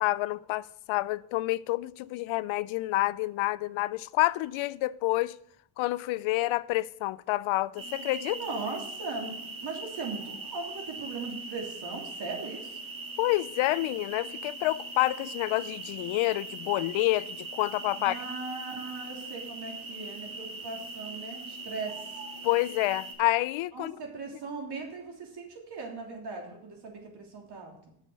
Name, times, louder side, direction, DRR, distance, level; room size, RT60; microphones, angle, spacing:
voice 1, 0.0-5.3 5.8-8.4 13.2-18.2 22.4-24.0, left 18 dB, 75° left, 0.5 m, -28 dB
sound 1, 7.8-23.1, right 3 dB, 70° right, 2.9 m, -41 dB
voice 2, 8.3-9.3 9.6-12.8 18.0-22.2 23.7-27.7, right 3 dB, 55° right, 3.2 m, -38 dB
9.1 x 6.6 x 6.9 m
cardioid pair, 110°, 49 cm